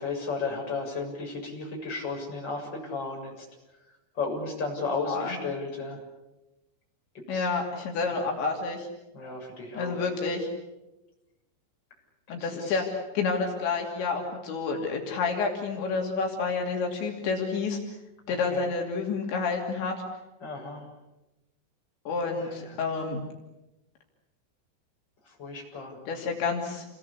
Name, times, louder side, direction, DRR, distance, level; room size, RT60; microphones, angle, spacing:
voice 1, 0.0-3.5 4.1-6.0 7.1-7.5 8.1-8.2 9.1-10.0 12.3-12.9 18.3-18.7 20.4-20.9 22.3-22.8 25.2-26.0, left 4 dB, 25° left, -1 dB, 7.5 m, -34 dB
voice 2, 7.3-8.9 9.8-10.5 12.3-17.8 18.3-20.0 22.1-23.2 26.1-26.9, left 4 dB, 75° left, 1 dB, 5.0 m, -29 dB
29.5 x 22.5 x 8.5 m, 0.99 s
omnidirectional pair, 5.4 m